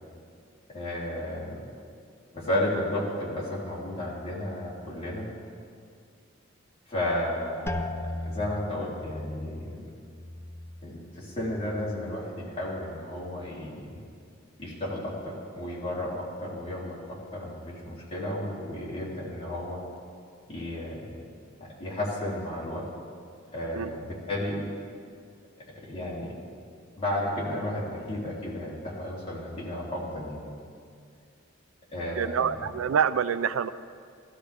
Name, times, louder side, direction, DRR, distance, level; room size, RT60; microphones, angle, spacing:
voice 1, 0.7-1.6 2.3-5.3 6.9-9.9 10.8-14.0 14.6-19.8 20.5-21.3 21.6-22.9 23.5-24.6 25.7-26.3 27.0-30.5 31.9-32.6, left 1 dB, 30° left, -7 dB, 3.2 m, -33 dB
sound 1, 7.7-13.3 13.6-14.3 14.9-15.3, left 2 dB, 10° left, 0.5 m, -39 dB
voice 2, 32.2-33.7, right 7 dB, 85° right, 14 dB, 0.4 m, -26 dB
16.0 x 12.5 x 3.4 m, 2.3 s
head